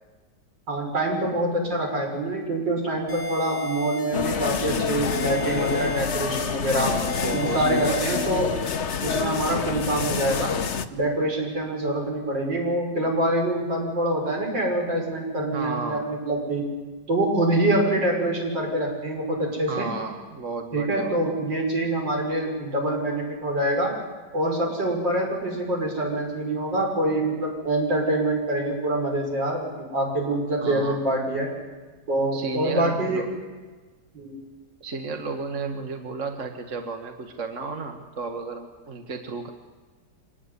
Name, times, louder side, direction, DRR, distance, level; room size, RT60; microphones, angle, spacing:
voice 1, 0.7-6.9 7.3-8.6 9.0-10.5 10.9-16.6 17.1-19.9 20.7-23.9 24.3-31.5 32.1-33.3 34.1-34.4, right 1 dB, 75° right, 0 dB, 6.9 m, -25 dB
sound 1, 3.1-4.7 5.1-6.7 7.1-8.7, left 2 dB, 25° right, 6.6 m, -33 dB
sound 2, 4.1-10.9, left 6 dB, 45° left, 1.1 m, -28 dB
voice 2, 6.7-8.4 15.5-16.1 19.7-21.3 30.6-31.0 32.3-33.3 34.8-39.5, right 4 dB, 45° right, 5 dB, 1.9 m, -33 dB
25.5 x 19.0 x 9.8 m, 1.3 s
omnidirectional pair, 2.0 m